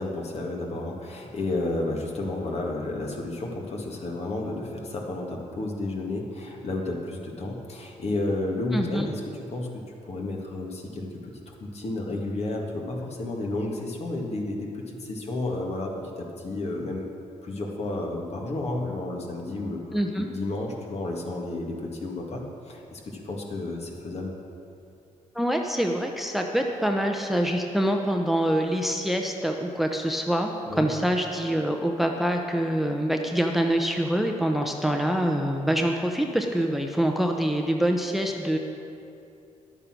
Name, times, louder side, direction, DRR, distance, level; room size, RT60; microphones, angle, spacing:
voice 1, 0.0-9.2 9.5-17.1 17.4-24.3 30.7-30.9, left 2 dB, 50° left, 0 dB, 2.0 m, -32 dB
voice 2, 8.7-9.1 19.9-20.3 25.3-38.6, equal, ahead, 3 dB, 0.9 m, -25 dB
11.0 x 8.7 x 6.2 m, 2.6 s
cardioid pair, 75°, 13 cm